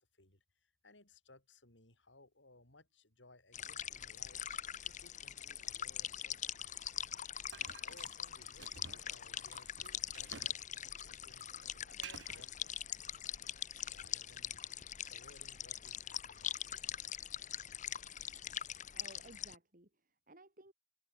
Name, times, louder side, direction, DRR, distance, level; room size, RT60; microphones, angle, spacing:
voice 1, 0.0-4.5 4.9-7.0 7.6-13.1 13.8-14.6 15.0-16.6, left 2 dB, 85° left, 7.0 m, -63 dB
sound 1, 3.5-19.5, left 9 dB, 45° left, 1.0 m, -43 dB
sound 2, 7.5-10.6 10.9-12.5, right 6 dB, 75° right, 1.2 m, -53 dB
voice 2, 18.9-20.7, right 2 dB, 50° right, 4.3 m, -58 dB
head